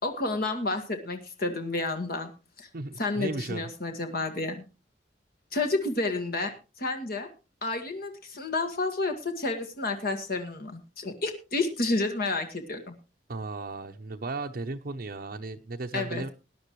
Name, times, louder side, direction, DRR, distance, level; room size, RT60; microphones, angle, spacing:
voice 1, 0.0-2.3 2.6-2.7 3.0-4.7 5.5-7.3 7.6-13.0 15.9-16.2, left 3 dB, 55° left, 5 dB, 1.8 m, -30 dB
voice 2, 2.7-3.7 13.3-16.3, right 3 dB, 55° right, 4 dB, 0.7 m, -35 dB
19.5 x 11.0 x 3.1 m, 0.29 s
head